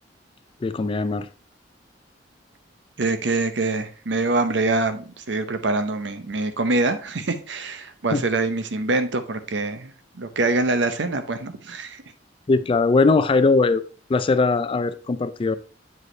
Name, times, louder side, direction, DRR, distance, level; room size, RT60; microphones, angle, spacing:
voice 1, 0.6-1.3 8.1-8.2 12.5-13.8 14.1-15.6, left 3 dB, 30° left, 0.3 m, -20 dB
voice 2, 3.0-9.9 10.2-12.0, right 2 dB, 70° right, 0.7 m, -24 dB
7.9 x 5.1 x 3.2 m
head